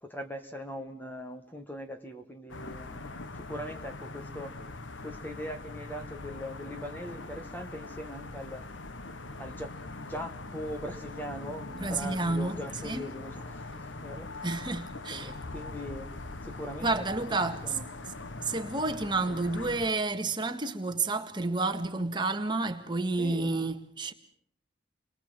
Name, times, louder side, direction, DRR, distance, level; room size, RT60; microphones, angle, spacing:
voice 1, 0.0-4.5 5.0-8.6 9.4-14.3 15.1-16.1 16.4-17.1 17.6-17.9 19.3-19.4 23.2-23.5, equal, 10° left, 1.7 m, -41 dB
sound 1, 2.5-19.9, left 2 dB, 85° left, 1.3 m, -42 dB
voice 2, 11.8-12.6 12.8-13.1 14.4-15.3 16.8-17.7 18.4-24.1, right 3 dB, 25° right, 1.8 m, -30 dB
30.0 x 22.5 x 7.7 m
head